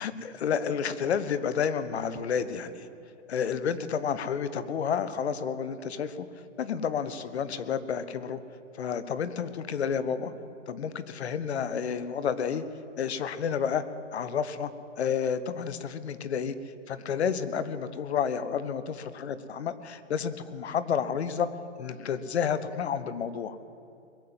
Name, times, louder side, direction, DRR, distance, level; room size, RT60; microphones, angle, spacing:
voice 1, 0.0-2.9 3.3-6.3 6.6-8.4 8.7-10.3 10.7-12.6 13.0-13.8 14.1-14.7 15.0-16.6 16.9-21.5 21.8-23.6, left 7 dB, 60° left, 13 dB, 1.1 m, -30 dB
21.5 x 7.6 x 7.7 m, 2.6 s
hypercardioid pair, 135°, 37 cm